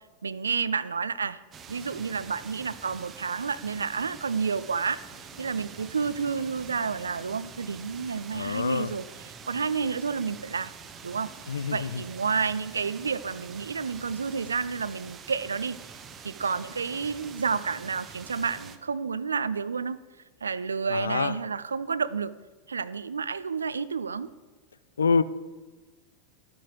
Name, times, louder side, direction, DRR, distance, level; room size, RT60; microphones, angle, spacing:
voice 1, 0.2-1.4 1.7-5.0 5.4-10.7 11.0-11.3 11.7-15.8 16.2-20.0 20.4-22.3 22.7-24.3, right 5 dB, 75° right, 17 dB, 0.3 m, -30 dB
sound 1, 1.5-18.8, right 6 dB, 25° right, 0.7 m, -46 dB
Boom, 5.1-8.3, left 5 dB, 10° left, 2.6 m, -54 dB
voice 2, 8.3-8.9 11.5-12.0 20.9-21.4 25.0-25.2, left 5 dB, 70° left, 16 dB, 0.3 m, -26 dB
12.5 x 8.4 x 3.0 m, 1.3 s
figure-of-eight pair, 90°, 0 cm